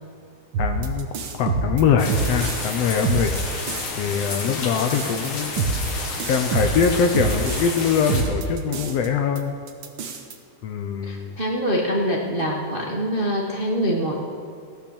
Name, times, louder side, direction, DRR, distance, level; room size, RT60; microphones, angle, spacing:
sound 1, 0.5-2.8 3.0-7.8 8.1-9.1 9.4-9.5 9.7-10.3, right 4 dB, 60° right, 1.3 m, -26 dB
voice 1, 0.6-3.3 4.0-5.5 6.2-9.5 10.6-11.3, left 6 dB, 70° left, 6 dB, 1.6 m, -23 dB
sound 2, 2.0-8.2, left 3 dB, 50° left, 2.4 m, -31 dB
voice 2, 11.0-14.3, equal, 45° right, -2 dB, 0.7 m, -24 dB
16.0 x 10.5 x 7.0 m, 2.4 s
omnidirectional pair, 3.4 m